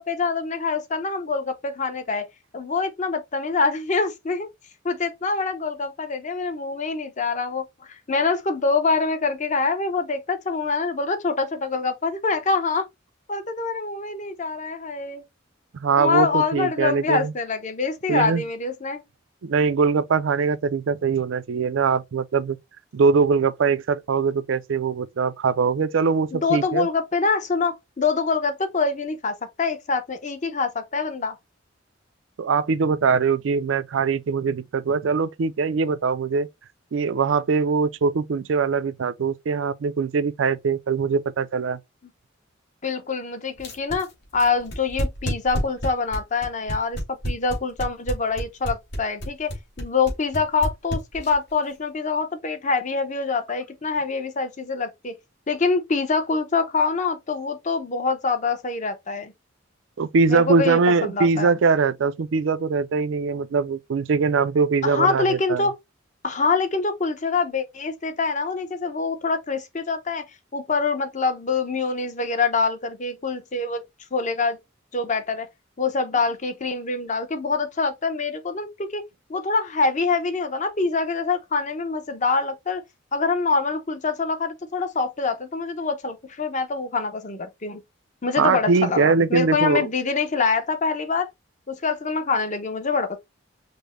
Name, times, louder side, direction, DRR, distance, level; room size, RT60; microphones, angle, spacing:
voice 1, 0.0-2.3 2.5-4.5 4.8-12.9 13.3-15.2 15.9-19.0 26.3-31.3 42.8-44.1 44.3-47.0 47.3-49.5 49.8-55.1 55.5-59.3 60.3-61.5 64.8-65.7 66.2-70.2 70.5-73.8 74.1-74.6 74.9-75.5 75.8-79.0 79.3-82.8 83.1-87.8 88.2-91.3 91.7-93.2, left 4 dB, 40° left, 0.8 m, -25 dB
voice 2, 15.7-17.3 18.1-18.4 19.4-22.6 22.9-26.9 32.4-36.5 36.9-41.8 60.0-65.7 88.4-89.9, right 5 dB, 75° right, 0.4 m, -22 dB
sound 1, 43.6-51.5, equal, 55° left, 2.1 m, -29 dB
5.2 x 2.1 x 3.1 m
head